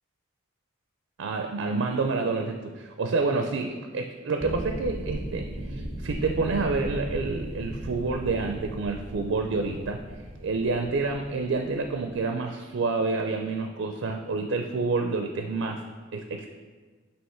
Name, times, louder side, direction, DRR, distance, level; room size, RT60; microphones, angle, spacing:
voice 1, 1.2-10.0 10.4-15.8 16.1-16.5, right 3 dB, 75° right, 4 dB, 0.4 m, -28 dB
sound 1, 4.4-12.2, right 1 dB, 10° left, 0.9 m, -37 dB
7.8 x 2.9 x 4.4 m, 1.4 s
head